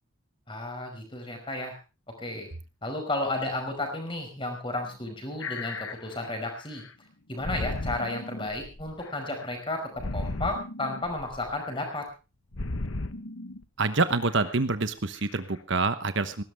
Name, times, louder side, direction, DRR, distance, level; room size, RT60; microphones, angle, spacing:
voice 1, 0.5-1.7 2.2-2.5 2.8-6.8 7.3-12.1, left 2 dB, 25° left, 4 dB, 5.4 m, -33 dB
sound 1, 4.9-5.1 5.4-6.9 7.4-9.5 10.0-12.0 12.5-13.6 14.1-14.6 15.2-15.3, left 2 dB, 70° left, 1.3 m, -36 dB
voice 2, 13.8-16.4, right 3 dB, 55° right, 11 dB, 1.1 m, -26 dB
19.5 x 17.0 x 3.5 m, 0.31 s
head